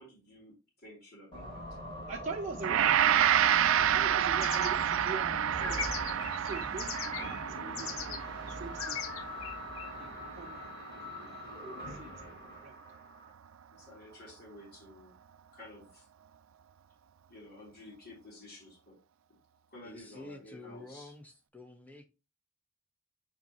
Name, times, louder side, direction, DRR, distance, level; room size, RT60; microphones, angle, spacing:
voice 1, 0.0-1.7 3.8-3.9 13.7-15.2 15.5-16.1 17.3-19.0 19.7-21.1, left 1 dB, 50° left, 3.5 m, -52 dB
sound 1, 1.3-13.3, left 1 dB, 25° left, 4.3 m, -44 dB
voice 2, 2.1-3.0 3.8-9.0 10.0-10.7 11.3-11.5 11.9-12.3 12.6-12.8, right 4 dB, 35° right, 0.8 m, -43 dB
Gong, 2.6-11.8, right 10 dB, 70° right, 0.4 m, -29 dB
sound 2, 4.4-7.4 7.8-8.2 8.5-9.9, left 7 dB, 80° left, 0.9 m, -40 dB
voice 3, 19.8-22.1, left 2 dB, 10° left, 1.0 m, -49 dB
9.2 x 4.4 x 3.0 m
head